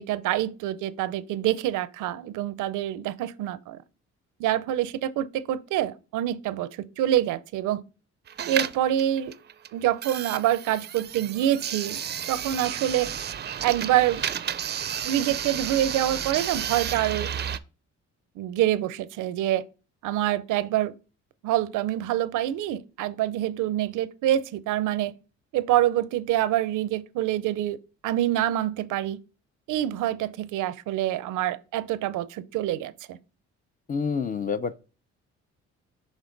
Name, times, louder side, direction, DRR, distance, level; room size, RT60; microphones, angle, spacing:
voice 1, 0.0-3.8 4.4-7.8 8.5-9.3 9.7-12.0 12.3-13.1 13.6-14.2 15.0-17.3 18.4-19.6 20.0-20.9 21.4-25.1 25.5-27.8 28.0-29.2 29.7-33.2, right 12 dB, 85° right, 0.5 m, -26 dB
sound 1, 8.3-17.6, right 9 dB, 35° right, 0.4 m, -32 dB
voice 2, 33.9-34.8, left 5 dB, 25° left, 0.5 m, -28 dB
7.2 x 3.6 x 3.8 m
cardioid pair, 90°, 30 cm